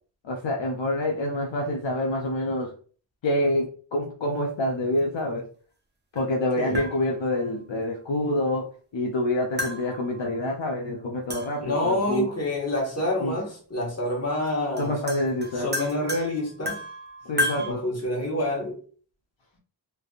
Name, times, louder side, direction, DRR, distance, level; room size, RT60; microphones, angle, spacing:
voice 1, 0.2-2.7 3.2-5.5 6.1-8.7 8.9-12.3 13.2-13.3 14.8-15.7 17.2-17.8, left 1 dB, 70° left, 0 dB, 0.7 m, -27 dB
sound 1, 6.2-6.3 6.7-7.5 9.6-10.5 11.3-11.9 13.3-13.4 14.5-14.6 14.8-17.7, left 1 dB, 25° right, 0.6 m, -33 dB
voice 2, 11.6-14.9 15.5-16.8 17.6-18.8, left 1 dB, 35° left, -1 dB, 1.2 m, -27 dB
3.3 x 2.5 x 2.4 m, 0.42 s
wide cardioid pair, 70°, 46 cm